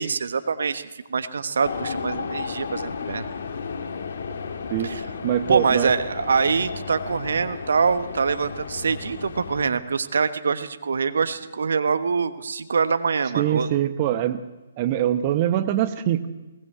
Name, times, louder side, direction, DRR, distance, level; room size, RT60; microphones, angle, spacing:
voice 1, 0.0-3.3 4.8-5.0 5.5-13.7, right 5 dB, 65° right, 11 dB, 1.3 m, -24 dB
sound 1, 1.6-9.7, left 5 dB, 55° left, 2.1 m, -33 dB
voice 2, 5.2-5.9 13.3-14.4 14.8-16.3, right 11 dB, 35° right, 10 dB, 1.1 m, -23 dB
21.0 x 19.5 x 7.9 m, 1.1 s
figure-of-eight pair, 130°, 0 cm